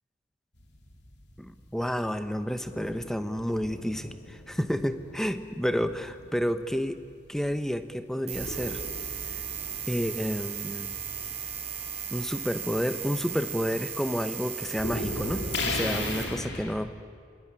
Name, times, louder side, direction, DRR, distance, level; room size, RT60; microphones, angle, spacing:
sound 1, 0.6-7.5 8.3-14.2 14.5-16.7, left 2 dB, 65° left, 3.0 m, -38 dB
voice 1, 1.4-7.0 7.3-8.8 9.9-11.0 12.1-16.9, equal, ahead, 9 dB, 0.9 m, -30 dB
sound 2, 8.3-16.2, right 8 dB, 35° right, 5.2 m, -36 dB
27.5 x 20.0 x 9.9 m, 2.1 s
head